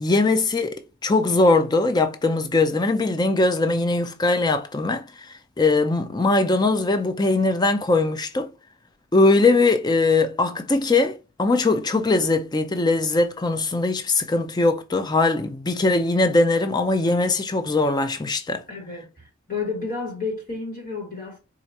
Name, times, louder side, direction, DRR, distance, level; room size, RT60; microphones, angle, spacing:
voice 1, 0.0-5.3 5.6-8.5 9.1-18.6, left 2 dB, 20° left, 0.4 m, -21 dB
voice 2, 18.7-21.4, left 4 dB, 35° left, 1.4 m, -31 dB
4.4 x 2.4 x 2.6 m
head